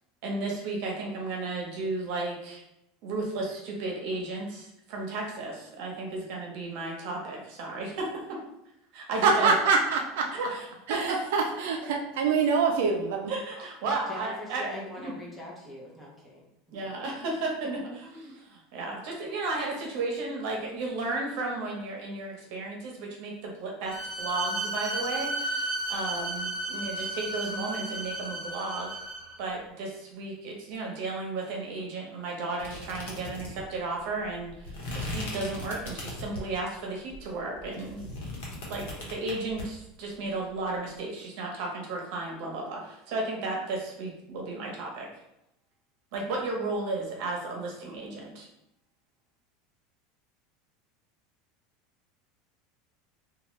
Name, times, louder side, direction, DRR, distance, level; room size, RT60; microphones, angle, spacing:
voice 1, 0.2-2.6 3.0-8.4 8.9-9.5 10.4-10.6 10.9-11.2 13.3-15.1 16.7-28.9 29.4-38.1 38.6-45.1 46.1-48.5, right 3 dB, 60° right, -1 dB, 0.8 m, -34 dB
voice 2, 9.2-10.2 10.9-13.3, right 5 dB, 80° right, 2 dB, 0.4 m, -24 dB
voice 3, 14.1-16.4 16.8-17.0, left 1 dB, 10° left, -5 dB, 0.8 m, -43 dB
Bowed string instrument, 23.9-29.4, right 2 dB, 10° right, 1.1 m, -33 dB
sound 1, 32.6-36.6 37.1-39.6, left 2 dB, 85° left, 1.1 m, -38 dB
2.8 x 2.3 x 3.1 m, 0.84 s
supercardioid pair, 150°, 0 cm